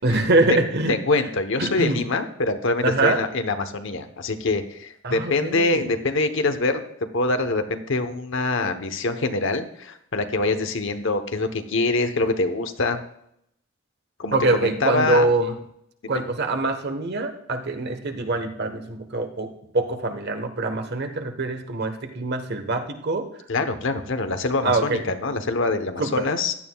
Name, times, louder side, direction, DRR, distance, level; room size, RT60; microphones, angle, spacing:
voice 1, 0.0-0.9 1.6-2.0 2.8-3.2 5.0-5.9 14.3-15.5 16.1-23.3 24.6-25.0 26.0-26.3, right 2 dB, 55° right, 6 dB, 1.2 m, -24 dB
voice 2, 0.9-13.0 14.2-15.3 16.0-16.1 23.5-26.5, left 3 dB, 65° left, 8 dB, 1.0 m, -24 dB
16.0 x 11.0 x 2.3 m, 0.75 s
head